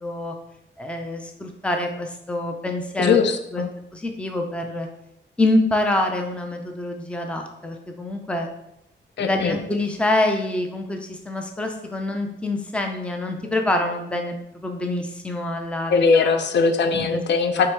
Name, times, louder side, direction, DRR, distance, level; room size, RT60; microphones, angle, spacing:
voice 1, 0.0-0.3 0.8-3.2 3.5-3.6 3.9-4.9 5.4-8.5 9.2-14.4 14.6-16.4 16.9-17.2 17.6-17.7, left 1 dB, 5° left, 3 dB, 0.4 m, -26 dB
voice 2, 3.0-3.7 9.2-9.6 15.9-17.7, left 5 dB, 60° left, 8 dB, 0.4 m, -20 dB
4.7 x 3.4 x 3.2 m, 0.81 s
wide cardioid pair, 155°, 20 cm